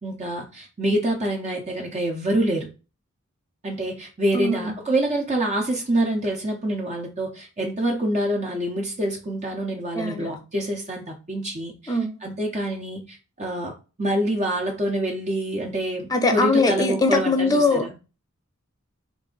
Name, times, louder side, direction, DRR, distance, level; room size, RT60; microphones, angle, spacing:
voice 1, 0.0-2.7 3.6-17.9, right 1 dB, 35° right, 0.7 m, -26 dB
voice 2, 4.3-4.7 9.9-10.3 11.9-12.1 16.1-18.0, left 3 dB, 15° left, 0.6 m, -21 dB
3.9 x 2.5 x 3.8 m
head